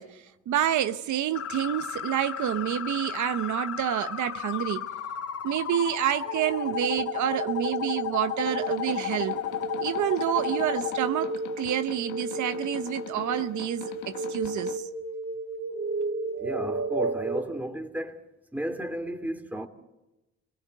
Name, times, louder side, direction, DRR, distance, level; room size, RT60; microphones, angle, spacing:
voice 1, 0.0-4.9 5.4-9.4 9.8-14.9, right 11 dB, 75° right, 1.0 m, -28 dB
sound 1, 1.3-11.0, left 10 dB, 50° left, 1.0 m, -34 dB
sound 2, 6.2-17.4, right 3 dB, 40° right, 2.5 m, -34 dB
sound 3, 8.3-14.8, left 9 dB, 80° left, 1.6 m, -43 dB
voice 2, 16.4-18.2 18.5-19.7, right 1 dB, 5° right, 2.8 m, -33 dB
26.0 x 19.0 x 9.4 m
cardioid pair, 90°, 30 cm